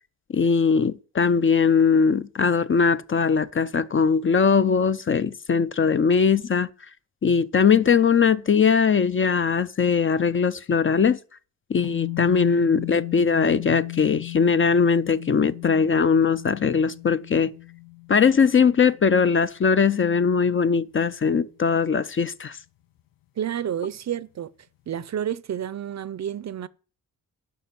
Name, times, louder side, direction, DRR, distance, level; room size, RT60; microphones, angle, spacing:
voice 1, 0.3-6.7 7.2-11.2 11.7-17.5 18.1-22.6, left 6 dB, 35° left, 0.5 m, -20 dB
sound 1, 11.8-20.3, left 26 dB, 70° left, 0.7 m, -35 dB
voice 2, 23.4-24.5 24.9-26.7, right 9 dB, 50° right, 0.5 m, -30 dB
11.0 x 5.9 x 7.4 m
wide cardioid pair, 110°, 35 cm